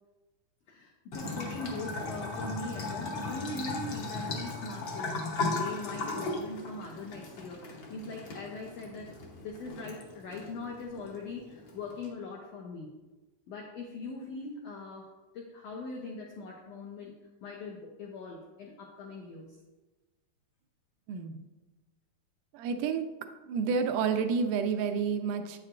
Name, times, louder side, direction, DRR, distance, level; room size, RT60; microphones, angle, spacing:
voice 1, 0.7-9.1 9.4-12.9 13.5-17.1 17.4-19.6, left 3 dB, 85° left, 0 dB, 1.4 m, -41 dB
Bathtub (filling or washing) / Trickle dribble, 1.1-12.1, left 3 dB, 65° left, 1.4 m, -37 dB
voice 2, 22.5-23.0 23.5-25.6, right 6 dB, 80° right, 7 dB, 2.0 m, -29 dB
8.7 x 7.5 x 2.5 m, 1.1 s
omnidirectional pair, 3.9 m